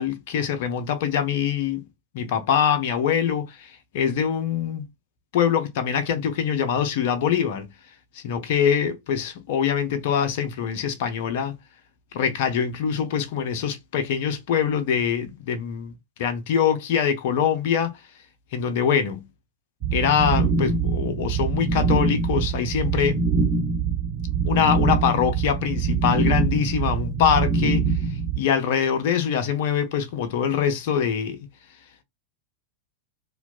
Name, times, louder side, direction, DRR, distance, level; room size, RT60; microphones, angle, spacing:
voice 1, 0.0-1.8 2.1-3.7 3.9-4.9 5.3-7.7 8.2-11.6 12.1-18.0 18.5-19.3 19.9-23.2 24.4-27.9 28.4-31.5, left 8 dB, 50° left, 0.5 m, -24 dB
sound 1, 19.8-28.4, right 4 dB, 30° right, 1.5 m, -24 dB
2.6 x 2.0 x 2.3 m
figure-of-eight pair, 90°, 0 cm